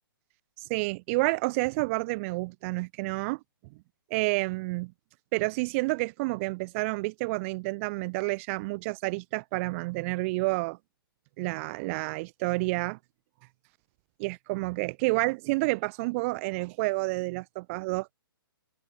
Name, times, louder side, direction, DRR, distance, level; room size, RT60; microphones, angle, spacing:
voice 1, 0.7-3.4 4.1-4.9 5.3-10.8 11.4-13.0 14.2-18.1, right 25 dB, 35° right, 7.1 m, -29 dB
figure-of-eight pair, 125°, 12 cm